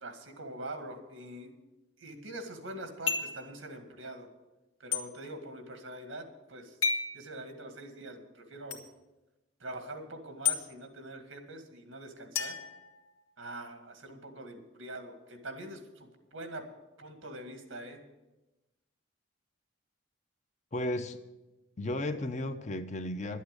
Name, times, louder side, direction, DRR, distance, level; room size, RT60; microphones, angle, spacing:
voice 1, 0.0-1.5 2.0-4.3 4.8-6.8 7.1-8.8 9.6-12.6 13.4-16.7 17.0-18.0, right 1 dB, 90° right, 6 dB, 2.0 m, -44 dB
sound 1, 3.1-3.4 4.9-5.0 6.8-7.1 8.7-8.8 10.4-10.6 12.3-13.4, left 6 dB, 90° left, 1.7 m, -31 dB
voice 2, 20.7-21.2 21.8-23.4, left 1 dB, 35° left, 9 dB, 0.7 m, -34 dB
11.5 x 8.4 x 8.2 m, 1.0 s
head